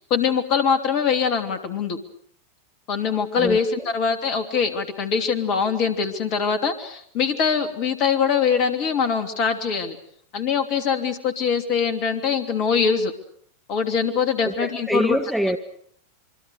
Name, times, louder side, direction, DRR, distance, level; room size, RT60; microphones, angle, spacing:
voice 1, 0.0-2.0 2.9-10.0 10.3-13.1 13.7-15.2, left 6 dB, 40° left, 8 dB, 3.0 m, -23 dB
voice 2, 3.4-3.9 14.4-15.6, equal, ahead, 7 dB, 1.1 m, -25 dB
26.5 x 24.0 x 6.6 m, 0.63 s
figure-of-eight pair, 90°, 0 cm